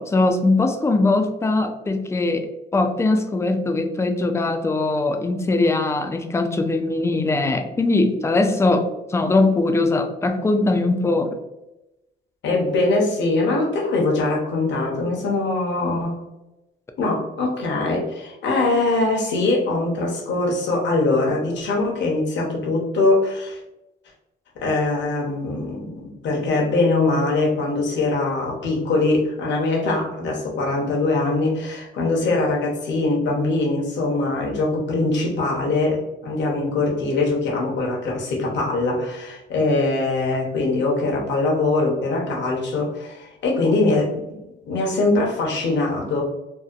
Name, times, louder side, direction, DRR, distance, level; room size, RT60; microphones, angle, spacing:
voice 1, 0.0-2.5 2.7-11.3, left 2 dB, 15° left, 6 dB, 0.3 m, -21 dB
voice 2, 12.4-16.2 17.0-23.6 24.6-46.2, left 2 dB, 65° left, -2 dB, 0.8 m, -22 dB
2.7 x 2.1 x 2.4 m, 0.96 s
cardioid pair, 90°, 20 cm